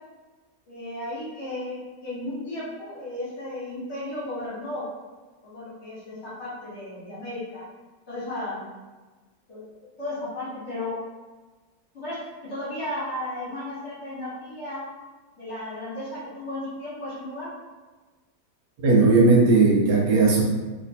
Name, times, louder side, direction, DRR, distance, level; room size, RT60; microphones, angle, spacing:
voice 1, 0.7-4.8 5.4-7.6 8.1-8.7 9.5-9.6 10.0-11.0 11.9-12.2 12.5-14.8 15.4-17.5, left 1 dB, 40° left, -9 dB, 1.2 m, -34 dB
voice 2, 18.8-20.4, right 3 dB, 70° right, -3 dB, 1.3 m, -17 dB
3.3 x 2.9 x 2.7 m, 1.3 s
omnidirectional pair, 2.1 m